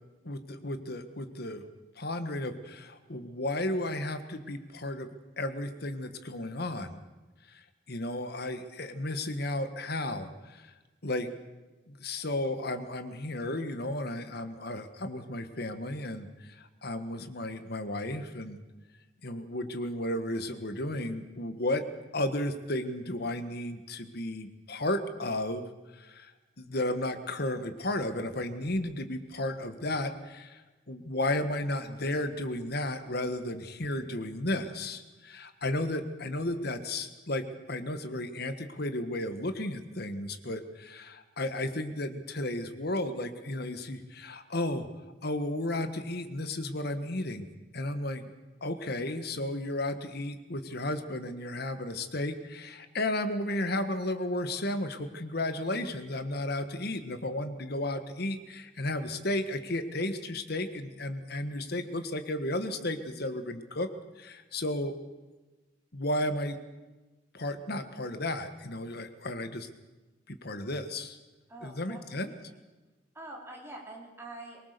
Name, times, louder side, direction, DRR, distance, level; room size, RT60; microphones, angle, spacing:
voice 1, 0.2-1.7 2.0-5.1 5.4-7.0 7.5-10.7 11.0-11.3 11.9-18.6 19.2-21.8 22.1-25.6 25.9-26.3 26.6-30.6 30.9-44.9 45.2-48.2 48.6-63.9 64.2-65.0 65.9-66.6 67.3-69.7 70.3-71.2 71.6-72.3, left 1 dB, 55° left, 9 dB, 1.6 m, -33 dB
voice 2, 71.5-72.6 73.1-74.6, right 2 dB, 15° right, -2 dB, 4.2 m, -46 dB
23.5 x 20.0 x 6.8 m, 1.2 s
head